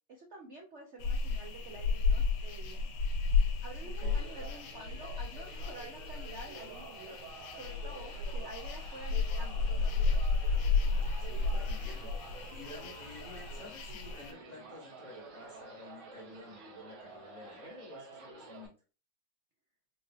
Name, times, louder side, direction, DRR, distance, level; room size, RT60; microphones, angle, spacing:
voice 1, 0.1-2.9 3.6-7.2 7.5-10.3, right 2 dB, 60° right, 0 dB, 0.7 m, -49 dB
sound 1, 1.0-14.3, left 4 dB, 85° left, 1.6 m, -33 dB
voice 2, 3.8-4.2 11.2-18.7, left 3 dB, 25° left, -3 dB, 1.1 m, -51 dB
sound 2, 4.0-18.7, right 4 dB, 75° right, 1.9 m, -50 dB
4.6 x 2.7 x 2.6 m, 0.34 s
omnidirectional pair, 2.3 m